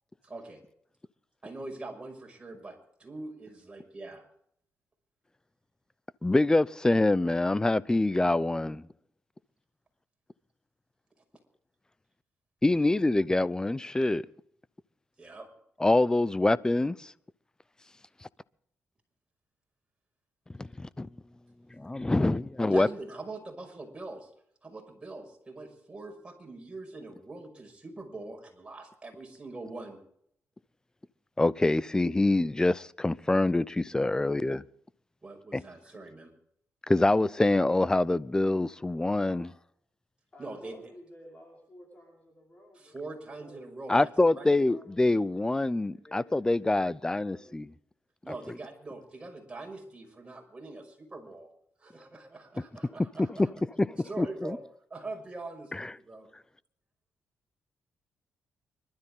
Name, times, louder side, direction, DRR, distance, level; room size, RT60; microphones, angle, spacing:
voice 1, 0.2-0.6 1.4-4.2 15.2-15.5 22.7-24.3 24.6-30.0 35.2-36.3 40.4-40.9 42.7-44.6 48.2-51.5 51.8-53.5 54.0-54.6 54.9-56.3, right 2 dB, 20° right, 5.8 m, -43 dB
voice 2, 6.2-8.9 12.6-14.3 15.8-17.1 20.6-21.1 21.8-22.9 31.4-34.6 35.5-35.6 36.9-39.5 43.9-47.7 53.3-53.4 53.8-54.6 55.7-55.9, left 2 dB, 15° left, 0.6 m, -25 dB
voice 3, 39.2-39.5 40.3-43.0 43.4-43.6 44.2-45.6 45.9-47.7, equal, 30° left, 5.4 m, -53 dB
25.0 x 12.5 x 3.8 m
cardioid pair, 85°, 5 cm